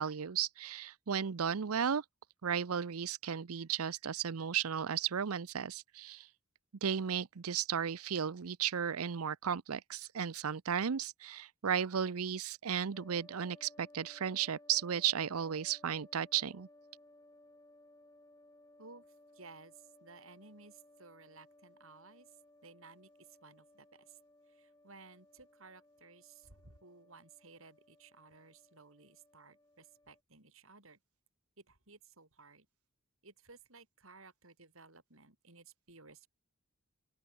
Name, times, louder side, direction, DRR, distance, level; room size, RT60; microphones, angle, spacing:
voice 1, 0.0-2.0 2.4-6.3 6.8-16.7, right 8 dB, 90° right, 0.6 m, -34 dB
sound 1, 12.9-30.2, left 1 dB, 15° left, 2.3 m, -62 dB
voice 2, 19.3-19.7 20.0-22.3 22.6-24.2 24.5-31.0 31.7-32.7 33.2-36.3, right 3 dB, 70° right, 5.8 m, -57 dB
open air
head